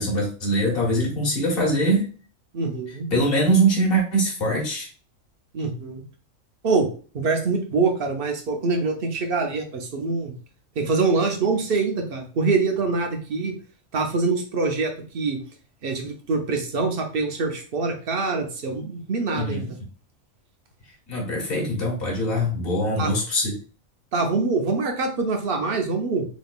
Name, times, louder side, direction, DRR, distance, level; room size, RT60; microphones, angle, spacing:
voice 1, 0.0-2.1 3.1-4.9 19.3-19.7 21.1-23.6, right 1 dB, 45° left, -2 dB, 1.4 m, -22 dB
voice 2, 2.5-3.1 5.5-6.0 6.6-6.9 7.1-10.3 10.8-13.5 13.9-15.4 15.8-19.6 23.0-23.1 24.1-26.3, right 4 dB, 55° right, 3 dB, 0.8 m, -24 dB
3.5 x 3.0 x 2.3 m, 0.39 s
omnidirectional pair, 1.4 m